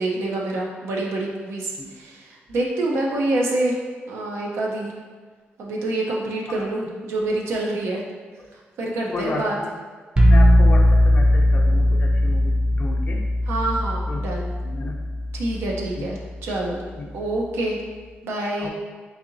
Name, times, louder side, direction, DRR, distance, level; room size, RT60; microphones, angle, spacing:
voice 1, 0.0-3.8 4.1-4.9 5.6-8.0 8.8-9.5 13.5-14.5 15.3-16.8 17.1-17.8 18.2-18.7, right 2 dB, 90° right, -1 dB, 0.6 m, -26 dB
voice 2, 9.1-9.7 10.3-13.2 14.1-14.2 14.6-14.9 16.0-16.1 17.0-17.1 18.6-18.7, left 2 dB, 45° left, 1 dB, 0.4 m, -32 dB
sound 1, 10.2-15.9, left 1 dB, 25° right, 0.5 m, -18 dB
4.1 x 2.8 x 2.6 m, 1.5 s
cardioid pair, 95°, 4 cm